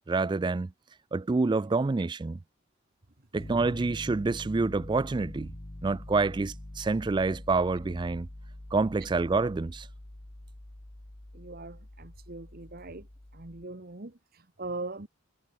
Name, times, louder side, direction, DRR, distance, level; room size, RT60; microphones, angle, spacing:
voice 1, 0.1-0.7 1.1-2.4 3.3-5.5 5.8-8.3 8.7-9.9, right 3 dB, 20° right, 0.3 m, -27 dB
Piano, 3.4-13.6, left 1 dB, 35° left, 1.5 m, -45 dB
voice 2, 11.3-13.1 13.3-15.1, right 2 dB, 45° right, 1.4 m, -41 dB
head